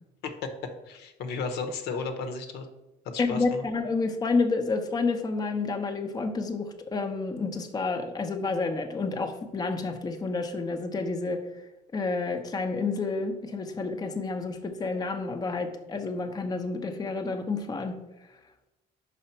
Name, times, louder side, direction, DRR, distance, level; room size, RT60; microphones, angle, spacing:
voice 1, 0.2-2.7 3.1-3.6, left 4 dB, 80° left, 6 dB, 0.9 m, -34 dB
voice 2, 3.2-11.4 11.9-18.0, left 3 dB, 25° left, 5 dB, 0.7 m, -29 dB
5.6 x 5.0 x 4.4 m, 0.99 s
cardioid pair, 110°, 17 cm